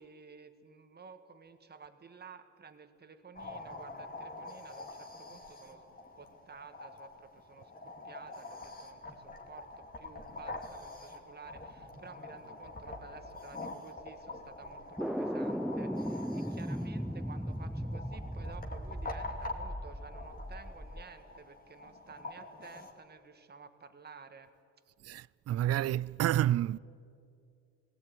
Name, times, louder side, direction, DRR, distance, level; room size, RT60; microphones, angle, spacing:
voice 1, 0.0-7.7 8.0-24.5, right 5 dB, 35° right, 1.7 m, -53 dB
sound 1, 3.3-22.9, left 2 dB, 30° left, 2.8 m, -46 dB
sound 2, 15.0-21.0, equal, ahead, 0.6 m, -37 dB
voice 2, 25.0-26.8, right 13 dB, 55° right, 0.5 m, -29 dB
19.0 x 17.0 x 9.4 m
cardioid pair, 90°, 30 cm